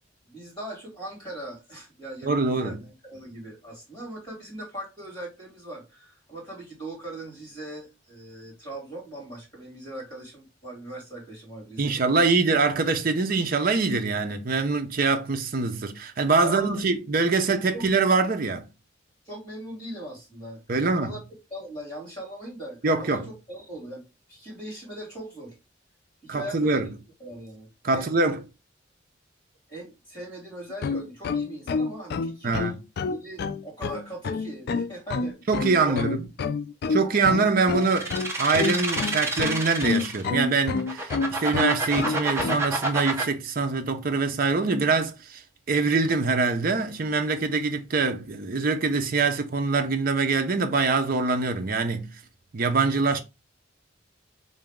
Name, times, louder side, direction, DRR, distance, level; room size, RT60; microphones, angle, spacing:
voice 1, 0.2-12.6 16.4-17.0 17.7-17.9 19.2-21.2 21.5-23.2 23.5-24.0 24.3-25.6 26.2-26.9 27.2-28.3 29.7-32.7 33.0-35.4 35.8-36.2, right 1 dB, 20° left, 2.7 m, -40 dB
voice 2, 2.2-2.8 11.8-18.7 20.7-21.1 22.8-23.3 26.3-26.9 27.8-28.4 32.4-32.8 35.5-36.3 36.9-45.4 45.7-52.1 52.5-53.2, right 4 dB, 45° right, 0.6 m, -24 dB
sound 1, 30.7-42.6, left 4 dB, 55° left, 0.3 m, -28 dB
sound 2, 37.8-40.3 40.8-43.2, right 2 dB, 15° right, 0.8 m, -28 dB
3.9 x 2.6 x 3.5 m
head